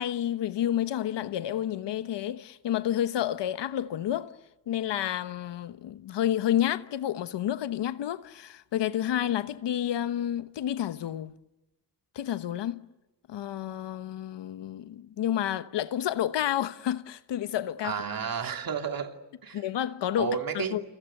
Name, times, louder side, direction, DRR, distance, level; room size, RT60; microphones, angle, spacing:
voice 1, 0.0-4.4 4.7-11.4 12.1-12.9 13.3-18.0 19.5-20.8, left 11 dB, 80° left, 1.1 m, -30 dB
voice 2, 17.8-19.6 20.2-20.8, right 6 dB, 55° right, 2.9 m, -32 dB
29.0 x 29.0 x 6.7 m
cardioid pair, 95°, 42 cm